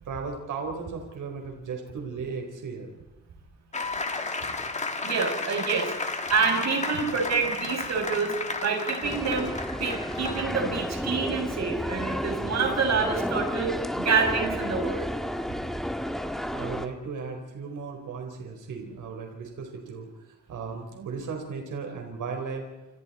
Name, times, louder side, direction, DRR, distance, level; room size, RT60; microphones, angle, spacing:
voice 1, 0.1-2.9 16.5-20.1 20.5-22.7, right 5 dB, 75° right, 3 dB, 4.3 m, -36 dB
sound 1, 3.7-10.8, left 3 dB, 20° left, 2.0 m, -33 dB
voice 2, 5.0-8.4 8.6-15.1, right 5 dB, 60° right, 2 dB, 6.8 m, -27 dB
sound 2, 9.0-16.9, equal, ahead, 1.7 m, -31 dB
28.5 x 28.0 x 4.3 m, 1.1 s
wide cardioid pair, 145°, 31 cm